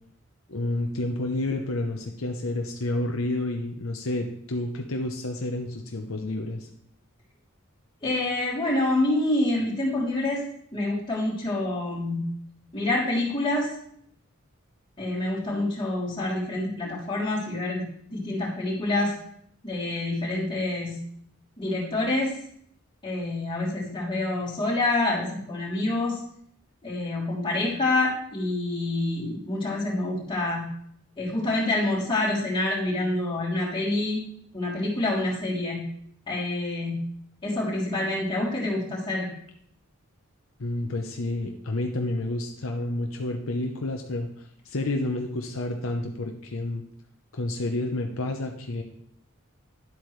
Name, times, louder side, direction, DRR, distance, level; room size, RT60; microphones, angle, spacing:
voice 1, 0.5-6.7 40.6-46.8 47.3-48.8, left 2 dB, 70° left, 2 dB, 0.8 m, -30 dB
voice 2, 8.0-10.4 10.7-12.2 12.7-13.7 15.0-17.8 18.1-19.2 19.6-21.0 21.6-22.3 23.0-26.2 26.8-30.6 31.2-34.2 34.5-35.8 36.3-37.0 37.4-39.3, left 2 dB, 25° left, -6 dB, 3.1 m, -27 dB
11.0 x 8.0 x 3.2 m, 0.69 s
head